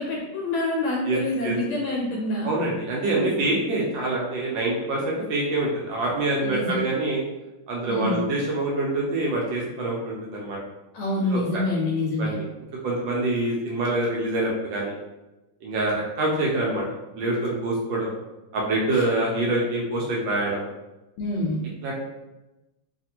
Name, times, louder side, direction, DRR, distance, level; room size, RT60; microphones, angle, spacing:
voice 1, 0.0-2.5 6.4-6.8 7.9-8.3 10.9-12.4 18.9-19.0 21.2-21.6, left 2 dB, 80° left, -2 dB, 1.4 m, -26 dB
voice 2, 1.0-1.5 2.4-7.2 7.7-10.6 11.3-11.6 12.2-12.4 12.8-15.0 15.6-16.8 17.1-18.1 18.5-20.6 21.8-21.9, right 2 dB, 75° right, -3 dB, 1.2 m, -25 dB
3.3 x 2.4 x 2.8 m, 1.0 s
omnidirectional pair, 2.4 m